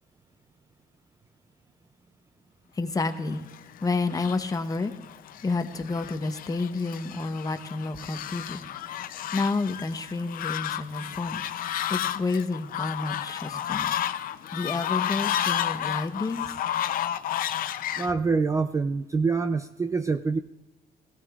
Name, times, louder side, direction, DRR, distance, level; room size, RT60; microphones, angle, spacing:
voice 1, 2.7-3.5 3.8-4.9 5.4-9.0 9.3-11.4 11.9-14.1 14.5-16.5, left 3 dB, 20° left, 8 dB, 0.9 m, -30 dB
Fowl, 3.3-18.1, left 11 dB, 60° left, 0.5 m, -32 dB
voice 2, 18.0-20.4, right 4 dB, 20° right, 9 dB, 0.4 m, -25 dB
17.5 x 16.0 x 2.4 m, 1.0 s
cardioid pair, 120°, 16 cm